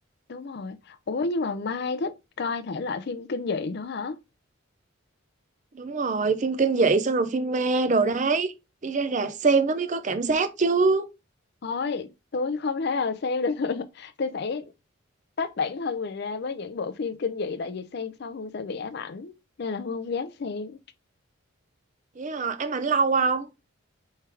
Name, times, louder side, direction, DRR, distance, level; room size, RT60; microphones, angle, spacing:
voice 1, 0.3-4.2 11.6-14.6 15.4-19.3 19.6-20.8, left 4 dB, 50° left, 0.4 m, -30 dB
voice 2, 5.7-8.5 8.8-11.1 22.2-23.5, right 4 dB, 35° right, 0.5 m, -23 dB
4.6 x 3.3 x 3.4 m
head